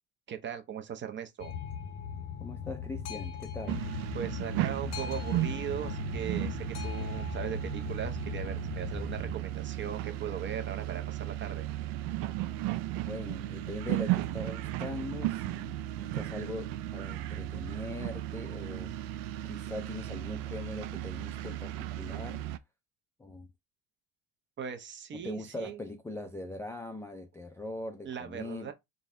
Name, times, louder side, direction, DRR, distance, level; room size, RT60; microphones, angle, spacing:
voice 1, 0.3-1.5 4.1-11.7 24.6-25.8 28.0-28.7, right 8 dB, 35° right, 0.7 m, -39 dB
Boat Water vehicle, 1.4-9.4, left 7 dB, 50° left, 0.7 m, -39 dB
voice 2, 2.4-3.9 13.1-18.9 19.4-22.4 23.2-23.5 25.1-28.7, left 2 dB, 10° left, 0.4 m, -41 dB
sound 1, 3.7-22.6, right 14 dB, 80° right, 0.5 m, -35 dB
4.0 x 2.2 x 3.5 m
cardioid pair, 110°, 34 cm